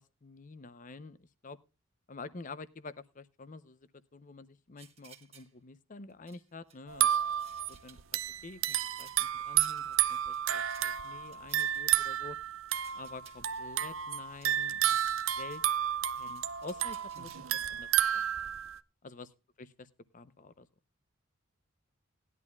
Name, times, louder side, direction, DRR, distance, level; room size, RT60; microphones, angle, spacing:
voice 1, 0.0-1.6 2.1-7.2 7.7-8.0 8.4-12.4 12.9-15.6 16.2-17.9 18.1-18.2 19.0-19.3 19.6-19.7 20.1-20.7, left 3 dB, 40° left, 15 dB, 0.6 m, -48 dB
sound 1, 4.8-5.5 6.1-6.8 7.2-9.2 9.6-15.6 15.9-17.4, right 8 dB, 30° right, 1.5 m, -57 dB
sound 2, 6.9-18.8, right 11 dB, 70° right, 0.5 m, -31 dB
18.0 x 11.0 x 2.3 m, 0.27 s
head